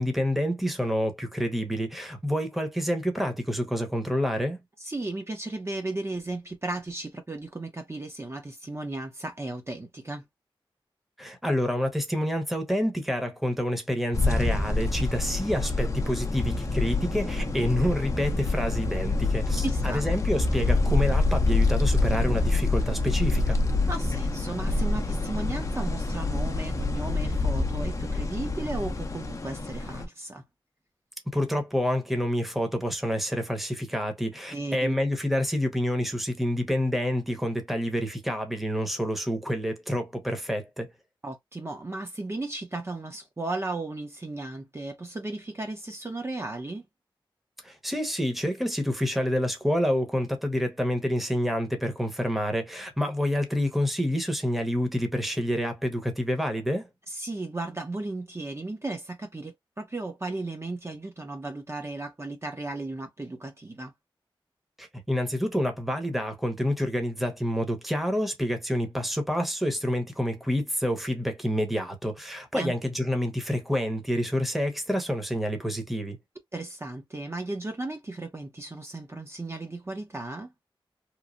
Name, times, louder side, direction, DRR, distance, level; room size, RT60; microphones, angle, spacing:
voice 1, 0.0-4.6 11.2-23.6 31.3-40.9 47.6-56.9 64.8-76.2, equal, ahead, 0.9 m, -28 dB
voice 2, 4.8-10.2 19.6-20.0 23.9-30.4 34.5-35.0 41.2-46.9 57.1-63.9 72.5-72.7 76.5-80.5, right 2 dB, 30° right, 0.7 m, -35 dB
sound 1, 14.1-30.1, left 2 dB, 35° left, 0.6 m, -26 dB
3.1 x 2.0 x 2.5 m
wide cardioid pair, 70°, 9 cm